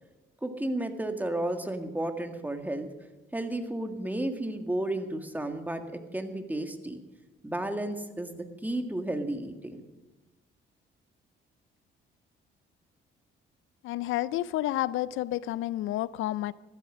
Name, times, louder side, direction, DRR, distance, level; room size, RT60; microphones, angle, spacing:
voice 1, 0.4-2.9 3.3-7.0 7.4-9.8, right 1 dB, 10° right, 6 dB, 1.8 m, -33 dB
voice 2, 13.8-16.5, left 14 dB, 85° left, 19 dB, 0.5 m, -30 dB
14.5 x 12.5 x 6.2 m, 1.1 s
cardioid pair, 90°, 20 cm